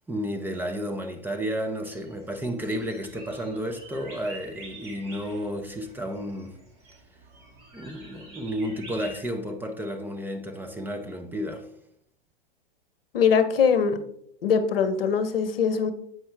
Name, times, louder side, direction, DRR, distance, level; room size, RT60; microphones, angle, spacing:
voice 1, 0.1-6.5 7.7-11.7, equal, 5° right, 0.6 m, -32 dB
sound 1, 1.8-9.2, right 2 dB, 40° right, 2.4 m, -47 dB
voice 2, 13.1-14.0 14.4-15.9, left 6 dB, 75° left, 0.8 m, -22 dB
7.8 x 5.5 x 3.3 m
hypercardioid pair, 105°, 29 cm